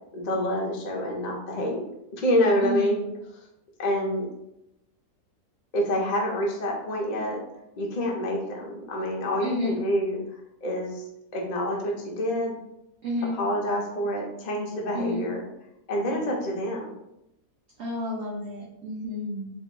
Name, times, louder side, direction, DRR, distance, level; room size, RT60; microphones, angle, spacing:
voice 1, 0.1-1.8 2.1-3.1 3.8-4.3 5.7-7.4 7.8-10.2 10.6-11.0 11.3-12.6 13.3-15.4 15.9-16.9, equal, 55° left, -1 dB, 0.4 m, -27 dB
voice 2, 2.6-2.9 9.4-9.8 13.0-13.4 14.9-15.3 17.8-19.5, left 1 dB, 60° right, -4 dB, 0.7 m, -30 dB
3.1 x 2.5 x 3.6 m, 0.84 s
omnidirectional pair, 1.7 m